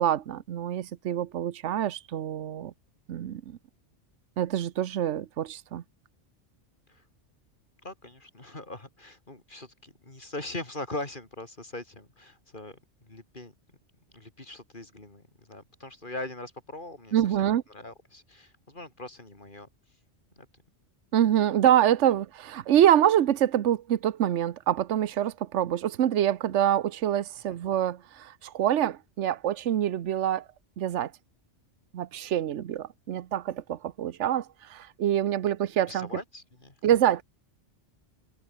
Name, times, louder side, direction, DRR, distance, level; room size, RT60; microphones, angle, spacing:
voice 1, 0.0-2.7 3.1-3.6 4.4-5.8 17.1-17.6 21.1-30.4 30.8-31.1 31.9-36.1 36.8-37.2, right 11 dB, 80° right, 1.1 m, -25 dB
voice 2, 7.8-13.5 14.1-19.7 20.4-20.5 27.5-27.6 35.9-36.8, left 2 dB, 45° left, 3.9 m, -41 dB
omnidirectional pair, 1.2 m